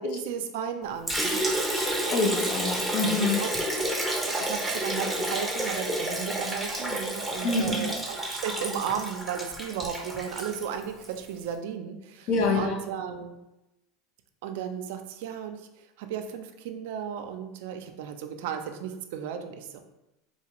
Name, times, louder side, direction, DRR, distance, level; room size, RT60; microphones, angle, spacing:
voice 1, 0.0-1.5 3.4-3.5 4.2-13.4 14.4-19.8, right 8 dB, 75° right, 6 dB, 0.4 m, -35 dB
Liquid, 1.1-11.2, right 1 dB, ahead, 0.7 m, -30 dB
voice 2, 1.7-3.4 7.4-7.9 12.3-12.8, left 3 dB, 60° left, 2 dB, 0.7 m, -26 dB
4.0 x 2.4 x 2.9 m, 0.94 s
supercardioid pair, 120°, 0 cm